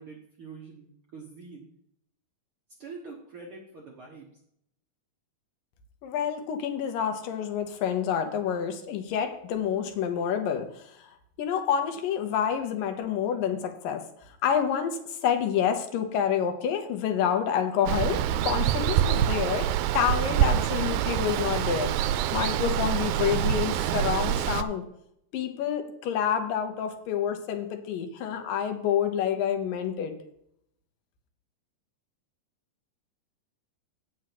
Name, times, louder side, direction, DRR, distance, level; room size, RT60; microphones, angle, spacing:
voice 1, 0.0-1.6 2.8-4.3, right 4 dB, 55° right, -1 dB, 1.5 m, -45 dB
voice 2, 6.0-11.1 11.4-14.0 14.4-19.7 19.9-21.9 22.3-24.8 25.3-30.1, left 8 dB, 75° left, 5 dB, 2.6 m, -28 dB
Water, 17.9-24.6, right 11 dB, 85° right, 2.2 m, -26 dB
8.7 x 6.2 x 6.0 m, 0.74 s
omnidirectional pair, 4.0 m